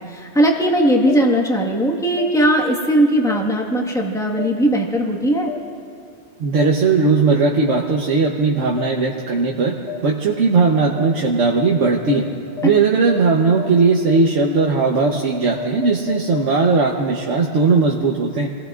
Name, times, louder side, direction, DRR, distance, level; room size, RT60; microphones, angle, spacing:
voice 1, 0.0-5.5, right 1 dB, 5° left, -1 dB, 1.4 m, -18 dB
sound 1, 1.1-1.2 2.2-2.3 3.3-3.4 4.4-4.5 5.5-5.6 6.6-6.7 7.7-7.8 8.8-8.9 9.9-10.0 11.0-11.1 11.6-11.7 12.1-12.2 12.6-12.7 13.1-13.2 13.6-13.7 14.1-14.2 14.6-14.7 15.1-15.2 15.6-16.7, left 9 dB, 60° left, 2.0 m, -30 dB
voice 2, 6.4-9.8 10.0-12.2 12.6-18.5, right 4 dB, 85° right, -1 dB, 1.3 m, -18 dB
28.5 x 19.5 x 2.5 m, 2.4 s
omnidirectional pair, 1.2 m